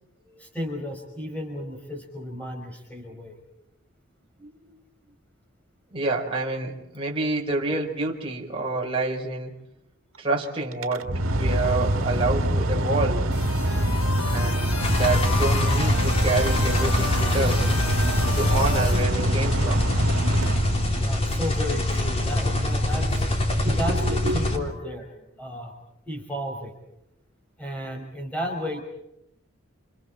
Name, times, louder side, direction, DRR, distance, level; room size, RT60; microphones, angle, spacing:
voice 1, 0.2-3.4 4.4-4.9 6.6-6.7 18.0-18.3 21.0-23.3 23.8-25.7 26.1-26.8 27.6-28.8, equal, 5° left, 2 dB, 5.5 m, -34 dB
voice 2, 5.9-9.5 10.2-13.3 14.3-17.7 18.3-19.9 23.6-24.4, right 2 dB, 25° right, -2 dB, 4.7 m, -28 dB
Mechanical fan, 10.7-21.2, right 1 dB, 85° right, 1.8 m, -25 dB
sound 1, 13.3-19.0, left 5 dB, 90° left, 3.8 m, -33 dB
sound 2, 14.8-24.6, left 1 dB, 30° left, 3.3 m, -25 dB
30.0 x 29.5 x 4.5 m, 0.81 s
head